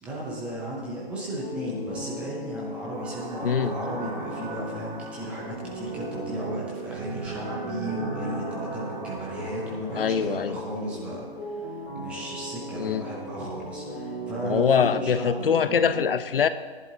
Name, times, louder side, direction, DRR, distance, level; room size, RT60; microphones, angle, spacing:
voice 1, 0.0-15.8, right 1 dB, 5° right, -5 dB, 0.5 m, -35 dB
sound 1, 1.4-16.0, right 1 dB, 20° left, 2.5 m, -38 dB
sound 2, 2.9-9.8, right 3 dB, 45° right, 3.2 m, -38 dB
voice 2, 9.9-10.6 12.8-13.0 14.4-16.5, left 7 dB, 60° left, 12 dB, 0.7 m, -23 dB
18.0 x 10.5 x 2.8 m, 1.4 s
hypercardioid pair, 150°, 32 cm